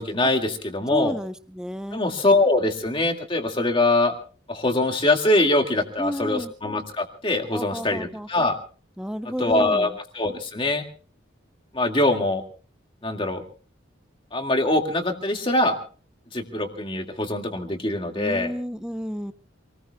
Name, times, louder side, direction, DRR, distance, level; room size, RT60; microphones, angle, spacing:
voice 1, 0.0-1.2 1.9-4.1 4.5-8.6 9.4-10.8 11.7-12.4 13.0-13.4 14.3-15.8 16.3-18.5, left 2 dB, 25° left, 4 dB, 2.1 m, -23 dB
voice 2, 0.9-2.0 6.0-6.5 7.5-8.3 9.0-10.0 18.2-19.3, equal, 5° right, 11 dB, 0.7 m, -31 dB
27.5 x 19.5 x 2.3 m, 0.40 s
head